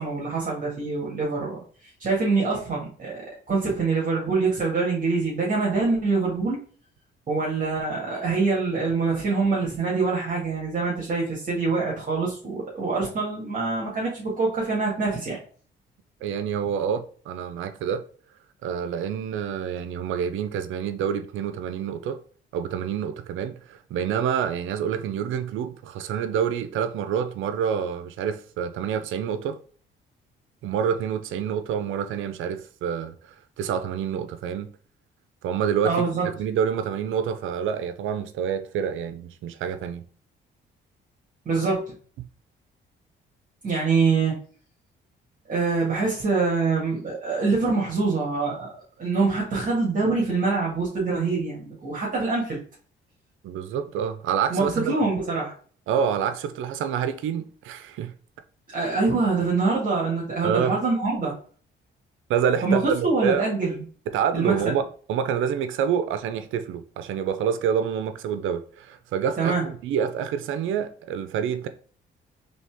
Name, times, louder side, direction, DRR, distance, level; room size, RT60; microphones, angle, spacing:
voice 1, 0.0-1.6 2.0-6.6 7.3-15.4 35.8-36.3 41.5-41.9 43.6-44.4 45.5-52.6 54.5-55.5 58.7-61.3 62.6-63.8 64.3-64.7 69.4-69.6, right 4 dB, 45° right, 1.8 m, -25 dB
voice 2, 16.2-18.0 18.6-22.2 22.5-29.6 30.6-34.7 35.4-36.0 36.4-40.0 53.4-54.9 55.9-58.1 60.4-60.7 62.3-63.4 64.1-71.7, right 8 dB, 85° right, 0.6 m, -27 dB
4.2 x 3.3 x 3.5 m
cardioid pair, 90°, 20 cm